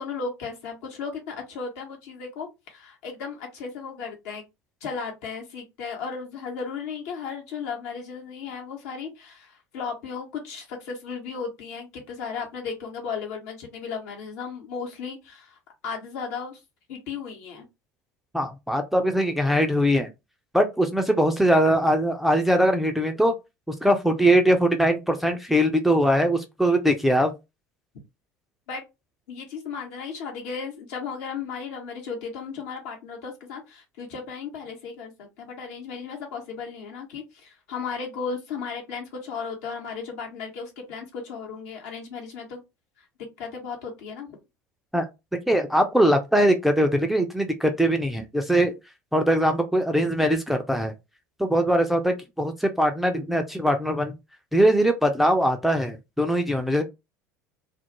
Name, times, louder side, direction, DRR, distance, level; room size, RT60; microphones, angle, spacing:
voice 1, 0.0-4.4 4.8-15.6 15.8-16.6 16.9-17.7 28.7-28.8 29.3-42.6 43.0-43.1 43.4-44.4, left 5 dB, 60° left, 0.9 m, -35 dB
voice 2, 18.3-20.1 20.5-23.3 23.7-27.3 44.9-45.1 45.5-48.7 49.1-50.9 51.4-54.1 54.5-56.8, equal, ahead, 0.4 m, -21 dB
2.3 x 2.0 x 2.9 m
figure-of-eight pair, 70°, 9 cm